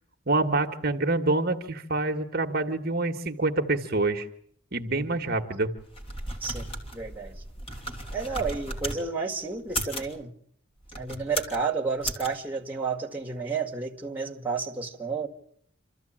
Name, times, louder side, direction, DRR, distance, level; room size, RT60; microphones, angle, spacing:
voice 1, 0.3-4.3 4.7-5.7, right 2 dB, 50° right, 1.4 m, -26 dB
sound 1, 5.8-9.0 9.6-10.1 10.8-11.6 12.0-12.3, equal, 30° left, 3.0 m, -35 dB
voice 2, 6.4-7.4 8.1-10.3 11.0-15.3, right 4 dB, 10° right, 1.9 m, -31 dB
26.5 x 14.0 x 8.8 m
head